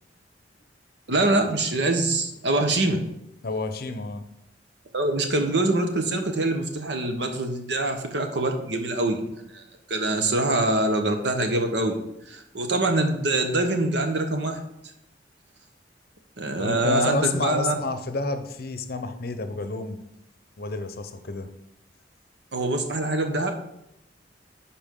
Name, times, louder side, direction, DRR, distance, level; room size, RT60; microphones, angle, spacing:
voice 1, 1.1-3.0 4.9-9.3 9.5-9.6 9.9-12.0 12.3-14.6 16.4-17.7 22.5-23.5, right 2 dB, 65° right, 5 dB, 1.0 m, -24 dB
voice 2, 3.4-4.2 16.6-20.0 20.6-21.5, left 3 dB, 55° left, 9 dB, 0.7 m, -29 dB
10.5 x 4.4 x 3.7 m, 0.82 s
head